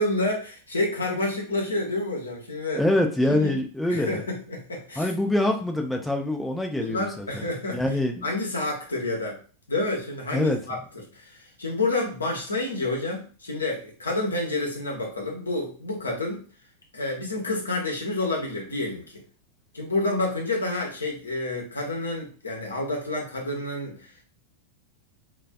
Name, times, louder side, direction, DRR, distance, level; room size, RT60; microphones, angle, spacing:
voice 1, 0.0-2.8 3.3-3.6 3.9-5.1 6.8-9.4 9.7-10.8 11.1-16.4 16.9-19.2 19.7-24.2, left 2 dB, 75° left, 0 dB, 0.8 m, -29 dB
voice 2, 2.7-4.2 5.0-7.4 7.7-8.3 10.3-10.6, left 1 dB, 5° left, 2 dB, 0.4 m, -25 dB
2.4 x 2.2 x 2.2 m, 0.38 s
figure-of-eight pair, 90°, 0 cm